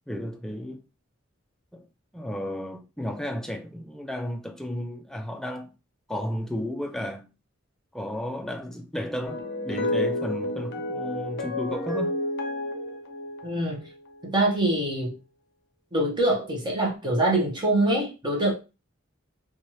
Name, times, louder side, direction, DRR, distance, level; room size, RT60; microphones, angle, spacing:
voice 1, 0.1-0.8 1.7-1.9 2.1-5.7 6.1-7.3 7.9-12.2, equal, ahead, 0.3 m, -33 dB
sound 1, 9.3-14.2, left 1 dB, 55° left, 0.5 m, -30 dB
voice 2, 13.4-13.8 14.2-15.1 15.9-18.5, right 1 dB, 20° right, 0.7 m, -24 dB
2.7 x 2.3 x 3.0 m
head